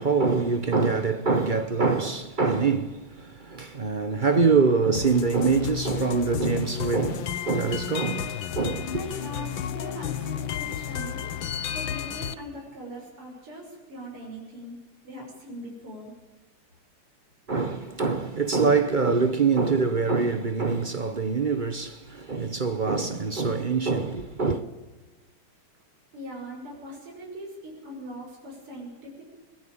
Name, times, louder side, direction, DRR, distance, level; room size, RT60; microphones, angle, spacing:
voice 1, 0.0-9.0 17.5-24.6, right 4 dB, 50° right, 0.5 m, -24 dB
sound 1, 4.9-12.3, left 10 dB, 65° left, 1.7 m, -32 dB
voice 2, 8.9-11.3 11.7-14.8 15.0-16.1 26.1-29.2, right 1 dB, 80° right, 7.0 m, -40 dB
22.0 x 21.0 x 8.8 m
omnidirectional pair, 2.4 m